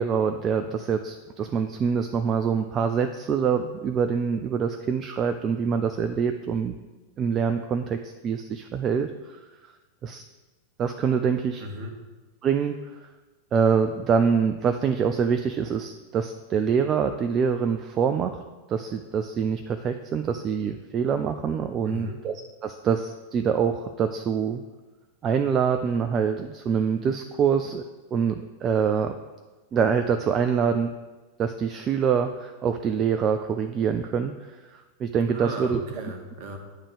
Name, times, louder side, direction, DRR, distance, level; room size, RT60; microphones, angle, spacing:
voice 1, 0.0-6.7 7.2-9.4 10.0-10.2 10.8-11.6 12.4-13.1 13.5-18.4 18.7-24.6 25.2-27.8 28.1-29.1 29.7-30.9 31.4-35.8, right 6 dB, 30° right, 7 dB, 0.4 m, -25 dB
voice 2, 11.6-12.0 21.8-22.2 35.3-36.6, right 1 dB, 45° right, 4 dB, 1.2 m, -36 dB
8.9 x 3.6 x 6.7 m, 1.2 s
figure-of-eight pair, 90°, 0 cm